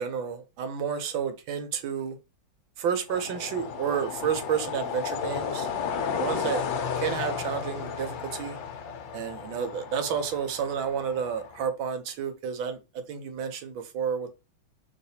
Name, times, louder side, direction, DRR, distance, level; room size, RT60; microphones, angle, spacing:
voice 1, 0.0-2.2 2.8-5.7 5.9-6.6 7.0-8.6 9.1-14.3, right 7 dB, 75° right, 1.5 m, -31 dB
sound 1, 3.1-11.6, left 6 dB, 70° left, 1.3 m, -33 dB
5.0 x 3.8 x 2.7 m
omnidirectional pair, 2.2 m